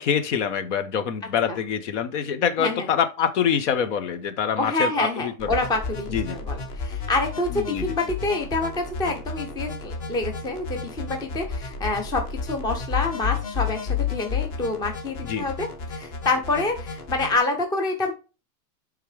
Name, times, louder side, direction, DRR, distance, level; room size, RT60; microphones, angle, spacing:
voice 1, 0.0-5.6 6.1-6.4 7.5-7.9 15.2-15.5, left 7 dB, 55° left, 1.1 m, -25 dB
voice 2, 4.6-18.1, left 2 dB, 10° left, 0.7 m, -27 dB
sound 1, 5.4-17.4, left 5 dB, 35° left, 1.5 m, -32 dB
9.0 x 3.7 x 3.3 m
supercardioid pair, 155°, 42 cm